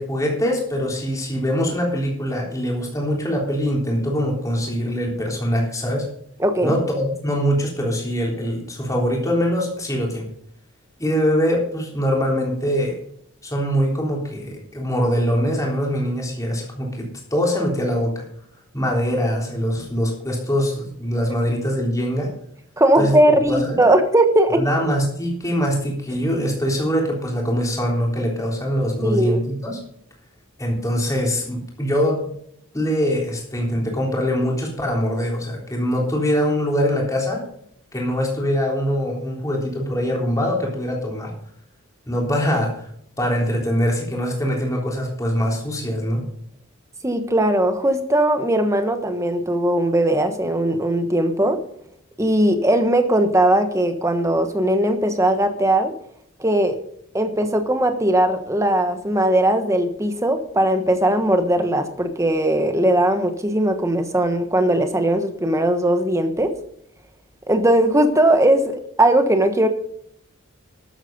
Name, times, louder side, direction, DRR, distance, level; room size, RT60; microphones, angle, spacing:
voice 1, 0.0-6.1 6.6-10.3 11.0-13.0 13.4-18.2 18.7-22.3 23.0-23.2 23.5-23.8 24.6-29.8 30.6-32.3 32.7-37.4 37.9-41.3 42.1-42.9 43.2-46.2, equal, 15° left, -1 dB, 3.6 m, -23 dB
voice 2, 6.4-6.8 22.8-24.7 29.0-29.4 47.0-51.6 52.2-55.9 56.4-56.8 57.1-66.5 67.5-69.7, right 1 dB, 15° right, 7 dB, 1.2 m, -19 dB
13.0 x 9.1 x 5.3 m, 0.69 s
head